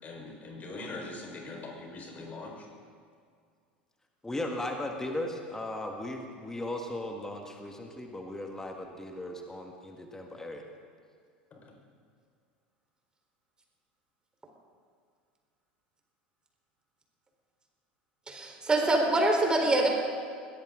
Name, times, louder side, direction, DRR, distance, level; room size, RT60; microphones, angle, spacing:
voice 1, 0.0-2.7 11.5-11.7, left 2 dB, 30° left, 0 dB, 4.9 m, -42 dB
voice 2, 4.2-10.6, left 1 dB, 10° left, 2 dB, 1.9 m, -37 dB
voice 3, 18.3-19.9, right 2 dB, 15° right, 1 dB, 4.2 m, -25 dB
21.5 x 17.5 x 3.9 m, 2.2 s
figure-of-eight pair, 80°, 5 cm